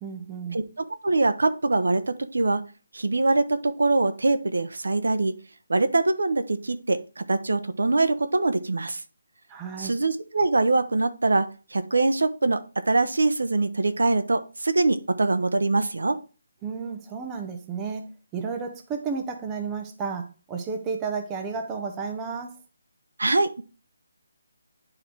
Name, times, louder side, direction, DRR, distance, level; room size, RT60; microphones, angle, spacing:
voice 1, 0.0-0.6 9.5-9.9 16.6-22.5, right 5 dB, 10° right, 3 dB, 0.8 m, -32 dB
voice 2, 0.5-2.6 2.9-5.4 5.7-9.0 9.8-16.2 23.2-23.6, right 2 dB, 90° right, 11 dB, 0.9 m, -23 dB
9.6 x 3.9 x 4.6 m, 0.34 s
hypercardioid pair, 170°, 0 cm